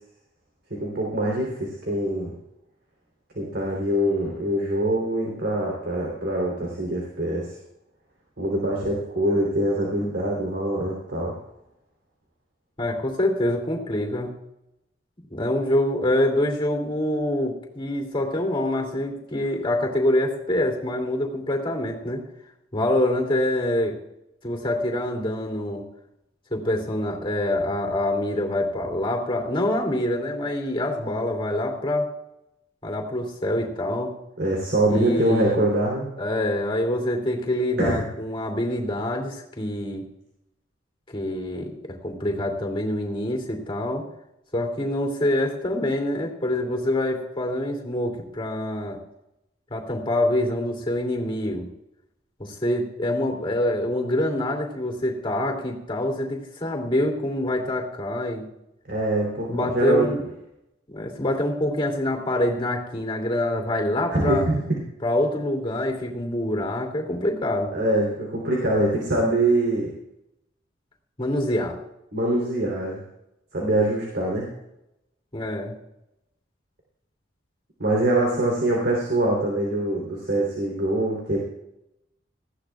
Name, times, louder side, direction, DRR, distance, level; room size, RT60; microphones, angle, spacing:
voice 1, 0.7-2.3 3.4-7.5 8.4-11.4 34.4-36.1 37.8-38.1 58.9-60.1 64.1-64.8 67.7-69.9 72.1-73.0 73.5-74.5 77.8-81.4, right 1 dB, 60° right, -2 dB, 3.4 m, -24 dB
voice 2, 12.8-14.3 15.3-22.2 22.7-23.9 24.4-25.8 26.5-32.1 32.8-34.2 34.9-35.6 36.2-40.0 41.1-41.7 42.0-44.0 44.5-49.0 49.7-51.7 52.4-58.4 59.5-60.2 60.9-64.5 65.0-67.7 71.2-71.8 75.3-75.7, left 1 dB, 30° left, 1 dB, 2.8 m, -25 dB
19.0 x 14.5 x 2.4 m, 0.85 s
head